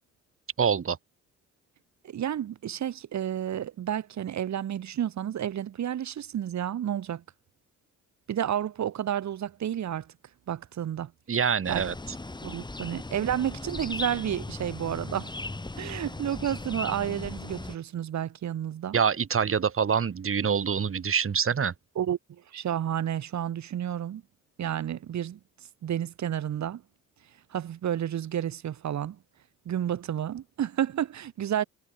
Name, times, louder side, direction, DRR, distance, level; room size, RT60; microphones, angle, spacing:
voice 1, 0.6-1.0 11.3-11.9 18.9-21.7, right 7 dB, 45° right, 6.0 m, -25 dB
voice 2, 2.0-7.2 8.3-10.1 10.5-11.1 11.7-11.9 12.4-15.3 15.8-19.0 21.9-24.2 24.6-25.4 25.8-26.8 27.5-29.2 29.6-31.6, right 10 dB, 65° right, 6.6 m, -31 dB
sound 1, 11.6-17.8, left 2 dB, 15° left, 2.7 m, -37 dB
cardioid pair, 90°, 30 cm